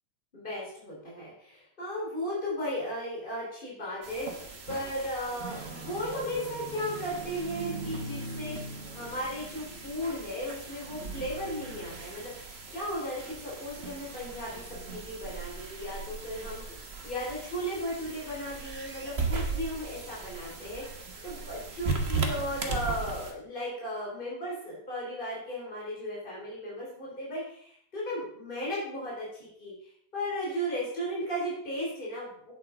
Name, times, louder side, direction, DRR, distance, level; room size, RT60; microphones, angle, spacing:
voice 1, 0.3-32.3, equal, 25° left, -5 dB, 3.8 m, -36 dB
sound 1, 4.0-23.3, right 4 dB, 35° right, 1.5 m, -37 dB
8.5 x 7.8 x 5.0 m, 0.67 s
omnidirectional pair, 2.1 m